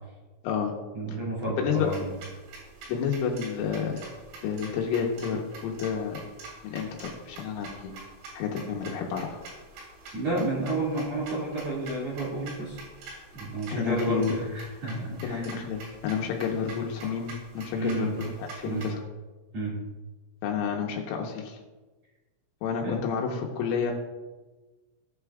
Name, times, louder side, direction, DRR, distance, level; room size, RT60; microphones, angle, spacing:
voice 1, 0.9-2.1 10.1-12.8 13.3-15.4 17.7-18.2 18.6-18.9 19.5-19.8 22.8-23.0, right 2 dB, 45° right, -6 dB, 2.5 m, -31 dB
voice 2, 1.6-1.9 2.9-4.0 4.4-6.2 6.6-7.9 8.4-9.4 13.7-14.4 15.2-19.0 20.4-21.6 22.6-23.9, left 6 dB, 80° left, 1 dB, 3.6 m, -30 dB
sound 1, 1.7-18.9, right 3 dB, 80° right, 6.8 m, -46 dB
18.0 x 8.9 x 2.4 m, 1.2 s
omnidirectional pair, 5.9 m